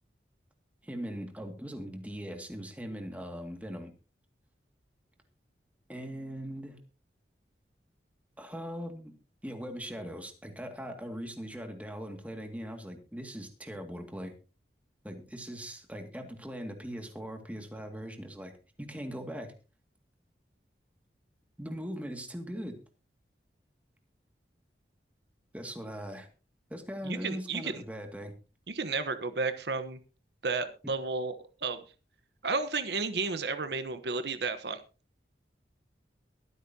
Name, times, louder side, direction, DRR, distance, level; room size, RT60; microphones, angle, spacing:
voice 1, 0.8-3.9 5.9-6.8 8.4-9.2 9.4-14.3 15.0-18.5 18.8-19.5 21.6-22.8 25.5-26.3 26.7-28.3 30.8-30.9, equal, 10° right, 4 dB, 2.2 m, -40 dB
voice 2, 27.0-27.8 28.7-30.0 30.4-31.3 31.6-31.8 32.4-34.8, right 4 dB, 70° right, 10 dB, 1.1 m, -32 dB
23.5 x 8.3 x 2.8 m, 0.33 s
head